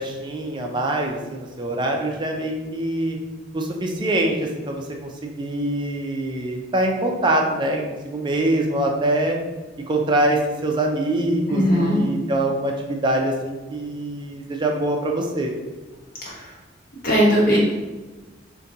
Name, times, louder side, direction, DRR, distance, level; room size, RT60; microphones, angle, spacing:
voice 1, 0.0-3.2 3.5-9.4 9.9-15.5, right 1 dB, 25° right, 1 dB, 0.4 m, -24 dB
voice 2, 11.5-12.0 16.2-16.5 17.0-17.6, equal, 50° left, -6 dB, 1.1 m, -19 dB
3.7 x 2.2 x 2.7 m, 1.2 s
head